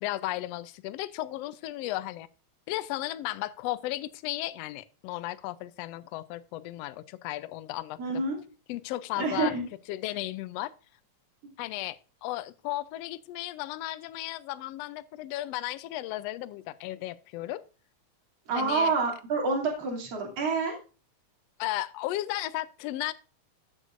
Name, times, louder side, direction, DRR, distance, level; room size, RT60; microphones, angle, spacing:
voice 1, 0.0-2.3 2.7-8.2 8.7-9.5 9.9-10.7 11.6-17.6 18.5-18.9 21.6-23.1, left 16 dB, 90° left, 1.4 m, -35 dB
voice 2, 8.0-8.4 9.2-9.6 18.5-20.8, right 4 dB, 50° right, 3.7 m, -28 dB
14.0 x 7.9 x 2.5 m
omnidirectional pair, 3.6 m